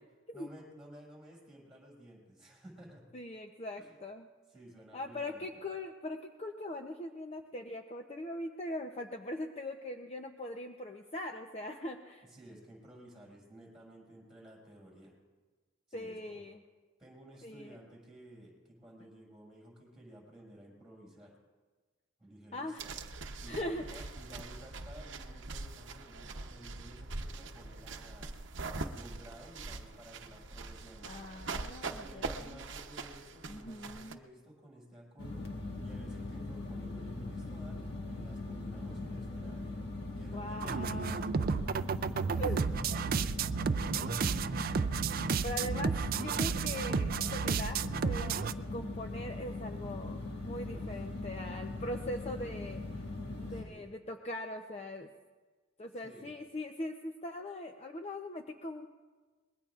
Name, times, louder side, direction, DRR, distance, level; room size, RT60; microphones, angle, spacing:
voice 1, 0.3-3.1 3.8-4.0 4.5-5.5 12.2-15.1 15.9-16.4 17.0-21.3 22.2-23.0 23.4-28.4 28.9-31.4 31.8-35.5 35.8-39.8 40.2-44.2 50.6-51.1 53.5-53.9 56.0-56.4, right 1 dB, 5° right, -2 dB, 6.2 m, -54 dB
voice 2, 3.1-4.2 4.9-12.3 15.9-16.6 17.4-17.8 22.5-22.8 23.5-24.1 31.0-32.7 33.5-34.2 40.3-41.2 42.4-42.7 45.4-52.8 53.4-55.1 55.8-58.9, left 1 dB, 30° left, 4 dB, 0.7 m, -41 dB
sound 1, 22.8-34.1, right 3 dB, 65° right, 0.9 m, -43 dB
sound 2, 35.2-53.6, left 2 dB, 55° left, 1.8 m, -40 dB
sound 3, 40.6-48.5, right 6 dB, 45° right, 0.4 m, -32 dB
25.0 x 21.5 x 2.5 m, 1.4 s
head